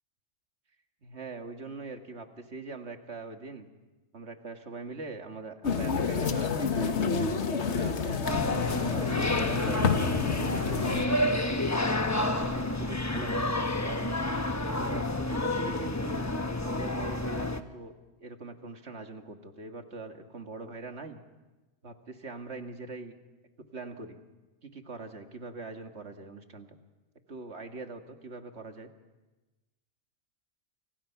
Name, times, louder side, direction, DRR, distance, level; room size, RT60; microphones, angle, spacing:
voice 1, 1.0-3.7 4.1-9.8 10.5-11.7 12.2-13.5 13.8-14.2 14.8-16.3 16.6-17.9 18.2-21.2 21.8-23.1 23.7-24.2 24.6-26.7 27.3-28.9, right 3 dB, 65° right, 5 dB, 2.2 m, -42 dB
sound 1, 5.6-11.1, left 5 dB, 75° left, 1.6 m, -29 dB
sound 2, 8.2-17.6, left 2 dB, 15° left, 0.9 m, -29 dB
29.5 x 28.0 x 5.9 m, 1.1 s
omnidirectional pair, 1.2 m